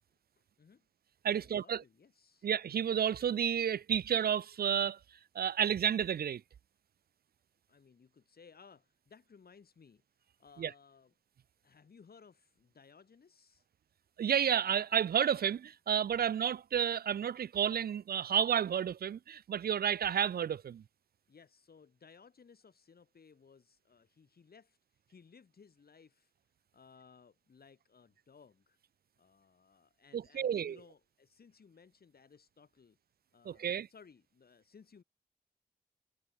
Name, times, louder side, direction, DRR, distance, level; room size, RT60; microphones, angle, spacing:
voice 1, 0.4-0.8 1.3-2.5 7.7-10.0 10.4-11.1 11.6-13.7 21.3-26.3 26.7-28.8 29.2-33.0 33.3-35.0, left 5 dB, 85° left, 3.2 m, -60 dB
voice 2, 1.2-1.8 2.4-5.0 5.4-6.4 10.6-10.7 14.2-20.8 30.1-30.8 33.5-33.9, right 8 dB, 85° right, 0.4 m, -31 dB
cardioid pair, 45°, 16 cm